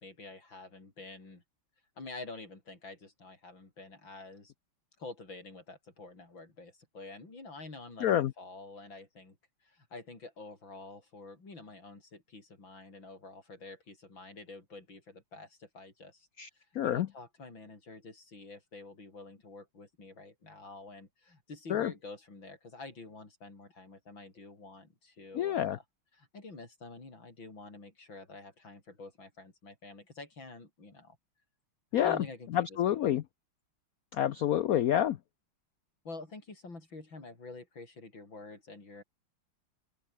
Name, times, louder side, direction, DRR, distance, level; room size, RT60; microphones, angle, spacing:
voice 1, 0.0-1.4 2.0-4.5 5.0-9.4 9.6-16.3 16.5-25.8 26.1-31.2 32.0-33.2 36.0-39.0, left 3 dB, 65° left, 6.2 m, -48 dB
voice 2, 8.0-8.3 16.4-16.5 16.8-17.1 21.7-21.9 25.4-25.8 31.9-32.2 32.5-33.2 34.1-35.2, left 11 dB, 85° left, 0.7 m, -28 dB
open air
omnidirectional pair, 2.3 m